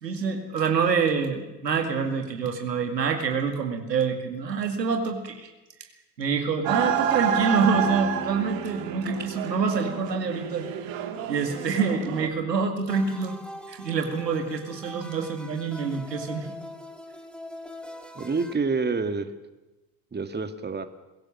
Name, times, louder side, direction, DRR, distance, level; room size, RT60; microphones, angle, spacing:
voice 1, 0.0-5.5 6.2-10.7 11.3-13.4 13.7-16.5, right 5 dB, 90° right, 5 dB, 2.3 m, -26 dB
sound 1, 6.6-12.3, right 8 dB, 65° right, 2.5 m, -29 dB
sound 2, 12.9-18.5, left 1 dB, ahead, 2.2 m, -42 dB
voice 2, 18.2-19.3 20.1-20.9, right 4 dB, 20° right, 9 dB, 2.0 m, -27 dB
22.5 x 16.5 x 7.3 m, 1.1 s
hypercardioid pair, 65°, 48 cm